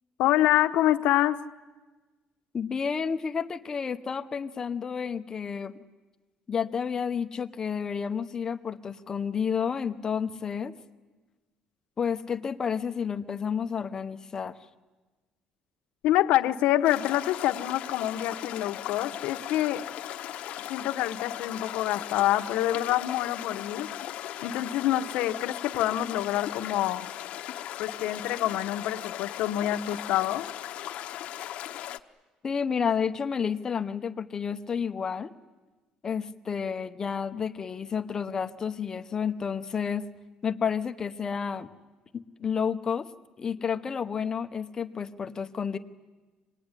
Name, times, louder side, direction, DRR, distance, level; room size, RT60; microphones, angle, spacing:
voice 1, 0.2-1.4 16.0-19.8 20.7-24.1 24.4-27.1 27.8-30.5, left 13 dB, 90° left, 7 dB, 1.2 m, -26 dB
voice 2, 2.5-5.7 6.5-10.7 12.0-14.6 32.4-35.3 36.0-40.0 40.4-41.7 42.1-43.1 43.4-45.8, left 6 dB, 25° left, 7 dB, 0.9 m, -30 dB
sound 1, 16.8-32.0, left 12 dB, 65° left, 1.0 m, -38 dB
27.0 x 19.5 x 9.9 m, 1.2 s
cardioid pair, 165°, 2 cm